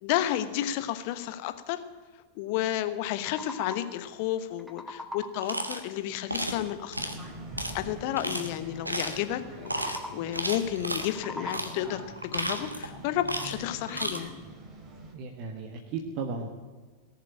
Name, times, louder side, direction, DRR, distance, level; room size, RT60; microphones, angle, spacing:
voice 1, 0.0-1.8 2.3-7.0 7.7-14.3, left 12 dB, 45° left, 11 dB, 1.1 m, -31 dB
sound 1, 3.1-4.1 4.4-5.6 9.5-10.4 10.9-12.0, left 1 dB, ahead, 1.5 m, -42 dB
sound 2, 5.4-5.8 6.3-6.6 6.9-7.2 7.6-7.7 8.2-8.5 8.8-9.2 9.7-10.0 10.3-11.1 11.5-11.7 12.2-12.9 13.2-13.6 13.9-14.2, right 1 dB, 85° right, 1.4 m, -32 dB
sound 3, 6.9-15.1, right 1 dB, 25° right, 3.0 m, -44 dB
voice 2, 15.1-16.5, right 4 dB, 40° right, 3 dB, 1.5 m, -35 dB
18.5 x 7.4 x 8.6 m, 1.4 s
figure-of-eight pair, 90°, 0 cm